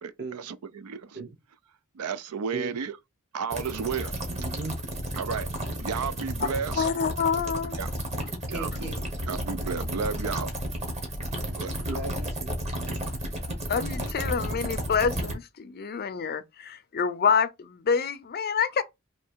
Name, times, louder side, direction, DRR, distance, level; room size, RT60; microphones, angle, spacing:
voice 1, 0.0-1.2 1.9-3.0 3.3-4.1 5.2-5.5 5.8-6.9 7.7-7.9 8.5-8.9 9.3-10.5 11.5-11.9, right 6 dB, 80° right, 0.4 m, -33 dB
sound 1, 3.5-15.3, right 1 dB, 30° right, 1.2 m, -32 dB
voice 2, 4.3-4.8 8.5-9.1 11.8-13.1, right 3 dB, 50° right, 1.2 m, -37 dB
voice 3, 6.8-7.8 13.7-18.8, left 6 dB, 45° left, 0.5 m, -27 dB
3.2 x 2.8 x 4.5 m
head